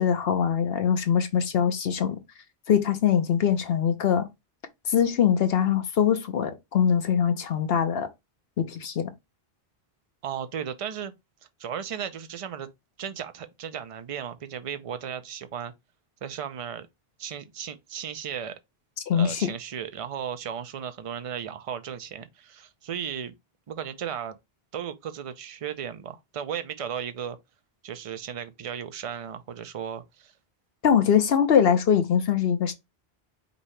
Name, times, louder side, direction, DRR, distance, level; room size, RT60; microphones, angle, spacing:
voice 1, 0.0-2.2 2.7-4.3 4.9-8.1 8.6-9.1 19.1-19.5 30.8-32.7, left 8 dB, 70° left, 1.0 m, -22 dB
voice 2, 10.2-11.1 11.6-12.7 13.0-15.7 16.2-16.9 17.2-18.6 19.1-23.3 23.7-24.4 24.7-27.4 27.8-30.3, right 8 dB, 45° right, 0.5 m, -35 dB
5.2 x 2.8 x 3.2 m
omnidirectional pair, 1.1 m